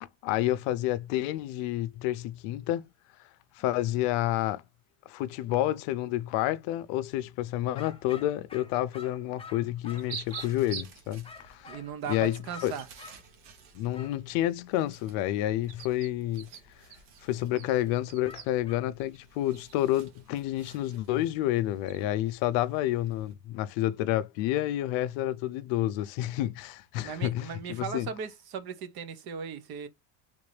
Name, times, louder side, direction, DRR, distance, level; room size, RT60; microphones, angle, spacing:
voice 1, 0.0-2.8 3.6-4.6 5.1-11.8 12.1-12.7 13.7-16.5 17.2-28.1, left 14 dB, 75° left, 0.6 m, -29 dB
sound 1, 7.7-10.7 11.2-13.2 13.9-14.2 18.2-18.9, left 5 dB, 15° left, 0.5 m, -48 dB
sound 2, 9.9-23.3, right 7 dB, 75° right, 1.2 m, -48 dB
voice 2, 11.7-12.9 27.0-29.9, right 6 dB, 50° right, 0.9 m, -37 dB
3.6 x 2.6 x 3.2 m
cardioid pair, 130°, 46 cm